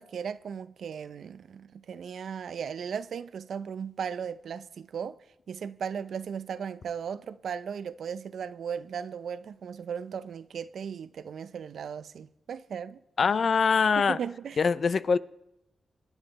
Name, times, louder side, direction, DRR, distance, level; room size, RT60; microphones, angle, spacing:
voice 1, 0.0-5.2 5.5-13.0 14.0-14.6, right 7 dB, 80° right, 0.5 m, -36 dB
voice 2, 13.2-14.2 14.6-15.2, left 5 dB, 60° left, 0.5 m, -23 dB
25.0 x 10.0 x 4.1 m
cardioid pair, 85°, 0 cm